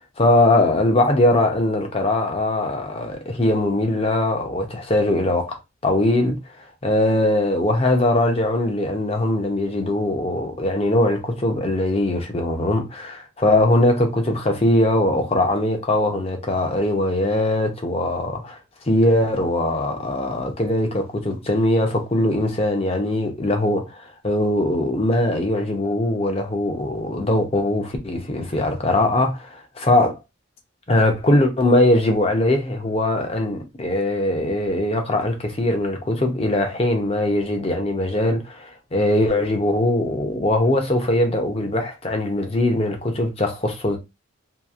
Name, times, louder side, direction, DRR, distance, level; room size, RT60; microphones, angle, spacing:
voice 1, 0.2-5.6 5.8-6.4 6.8-18.6 18.9-30.2 30.9-44.0, left 1 dB, 30° left, 0.6 m, -21 dB
2.8 x 2.4 x 2.3 m
head